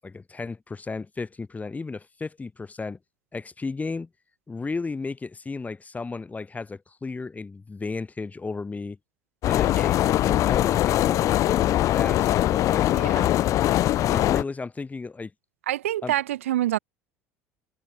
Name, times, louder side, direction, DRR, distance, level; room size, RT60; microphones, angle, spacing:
voice 1, 0.0-3.0 3.3-4.1 4.5-9.0 9.4-12.9 14.0-15.3 16.0-16.1, left 4 dB, 20° left, 7.5 m, -34 dB
sound 1, 9.4-14.4, left 14 dB, 50° left, 0.4 m, -22 dB
voice 2, 12.9-13.3 15.7-16.8, right 13 dB, 80° right, 3.6 m, -26 dB
hypercardioid pair, 65°, 7 cm